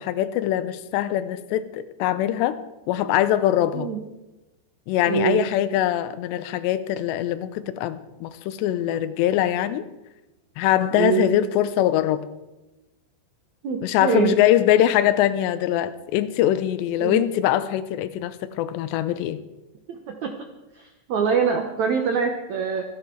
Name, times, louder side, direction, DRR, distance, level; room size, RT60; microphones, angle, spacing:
voice 1, 0.0-2.6 2.9-3.9 4.9-9.8 10.6-12.2 13.8-19.4, left 12 dB, 90° left, 13 dB, 3.0 m, -22 dB
voice 2, 5.1-5.4 10.9-11.3 13.6-14.4 17.0-17.3 19.9-20.3 20.7-22.8, right 6 dB, 75° right, 4 dB, 1.6 m, -24 dB
25.0 x 10.5 x 4.6 m, 1.0 s
omnidirectional pair, 4.9 m